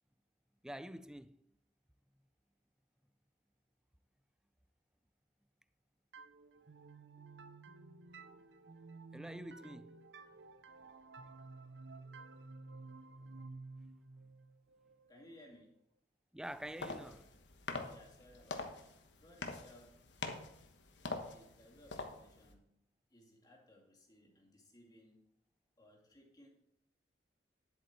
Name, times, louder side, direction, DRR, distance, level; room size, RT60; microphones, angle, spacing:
voice 1, 0.6-1.4 9.1-10.0 16.3-17.3, equal, 5° right, 0.3 m, -47 dB
sound 1, 6.1-15.7, right 3 dB, 75° right, 0.7 m, -53 dB
voice 2, 15.1-15.8 17.7-18.9 19.1-20.0 21.0-22.7 23.1-25.2 25.8-26.5, left 1 dB, 20° left, 2.4 m, -61 dB
sound 2, 16.4-22.5, left 3 dB, 75° left, 1.2 m, -45 dB
10.5 x 7.9 x 4.5 m
head